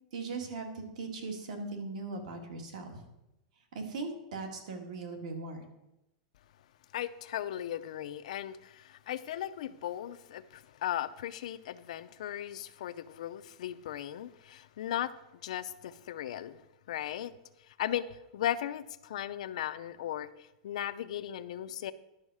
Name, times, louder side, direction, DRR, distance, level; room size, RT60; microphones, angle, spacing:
voice 1, 0.1-3.1 3.7-5.7, right 3 dB, 70° right, 3 dB, 2.0 m, -39 dB
voice 2, 6.9-15.1 15.4-16.6 16.9-17.3 17.8-21.9, left 11 dB, 65° left, 13 dB, 0.5 m, -37 dB
11.0 x 6.3 x 4.9 m, 0.90 s
supercardioid pair, 180°, 4 cm